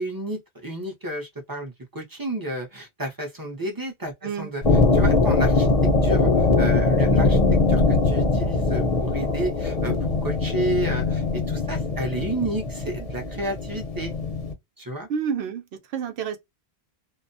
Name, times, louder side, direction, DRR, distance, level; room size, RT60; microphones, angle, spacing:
voice 1, 0.0-4.6 4.9-5.7 6.0-6.3 6.6-7.4 7.7-9.9 10.2-14.1 14.8-15.1, right 1 dB, 25° right, 0.6 m, -31 dB
sound 1, 4.6-14.5, left 3 dB, 45° left, 0.6 m, -21 dB
voice 2, 15.1-16.4, right 7 dB, 85° right, 0.8 m, -29 dB
2.3 x 2.1 x 2.5 m
omnidirectional pair, 1.0 m